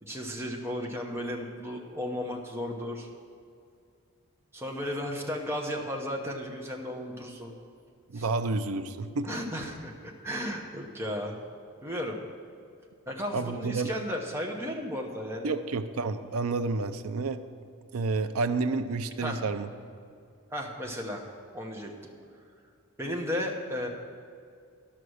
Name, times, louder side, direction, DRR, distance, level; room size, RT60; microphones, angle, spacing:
voice 1, 0.0-3.1 4.5-7.5 8.1-8.3 9.2-11.4 11.8-12.2 13.1-15.5 19.2-19.4 20.5-21.2 21.5-21.9 23.0-23.9, equal, 10° right, 0 dB, 0.9 m, -34 dB
voice 2, 8.1-9.3 13.3-13.9 15.4-17.4 17.9-19.7, right 3 dB, 75° right, 10 dB, 0.5 m, -30 dB
11.0 x 5.8 x 6.4 m, 2.3 s
head